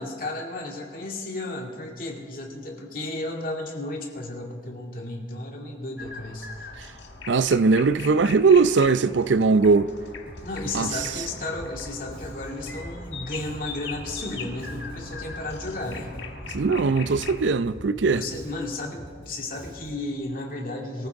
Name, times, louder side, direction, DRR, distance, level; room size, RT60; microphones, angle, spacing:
voice 1, 0.0-6.7 10.4-16.1 18.1-21.1, left 2 dB, 50° left, 2.4 m, -33 dB
sound 1, 6.0-17.4, left 4 dB, 80° left, 1.7 m, -41 dB
voice 2, 7.3-9.9 10.7-10.9 16.5-18.2, right 4 dB, 85° right, 0.6 m, -20 dB
sound 2, 9.4-18.2, equal, 45° right, 3.8 m, -46 dB
Bass guitar, 10.3-20.1, equal, 30° right, 4.6 m, -44 dB
24.0 x 14.5 x 3.6 m
head